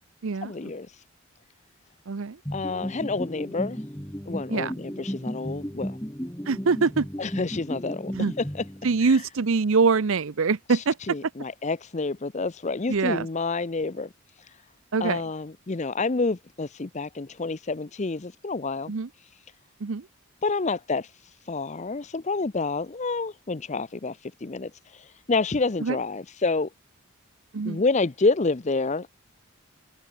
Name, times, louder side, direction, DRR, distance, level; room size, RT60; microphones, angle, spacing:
voice 1, 0.4-1.0 2.5-3.8 4.3-6.0 7.2-8.7 9.0-9.3 10.7-14.1 14.4-14.6 15.0-18.9 19.2-19.3 20.4-26.7 27.7-29.1, left 3 dB, 30° left, 0.6 m, -29 dB
sound 1, 2.5-9.2, equal, 10° left, 2.4 m, -35 dB
voice 2, 6.5-7.0 8.1-8.3 8.8-10.9 12.9-13.3 14.9-15.2 18.9-19.1 19.8-20.0 25.8-25.9 27.5-27.8, right 4 dB, 60° right, 0.6 m, -24 dB
head